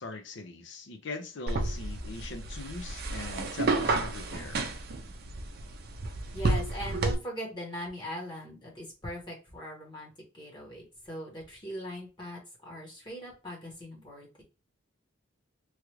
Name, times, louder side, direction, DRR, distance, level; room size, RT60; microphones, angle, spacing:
voice 1, 0.0-4.6, left 3 dB, 65° left, 0.6 m, -41 dB
sound 1, 1.5-7.1, right 2 dB, 50° right, 0.5 m, -31 dB
voice 2, 6.3-14.4, equal, 25° left, 1.0 m, -40 dB
3.1 x 2.4 x 3.0 m
head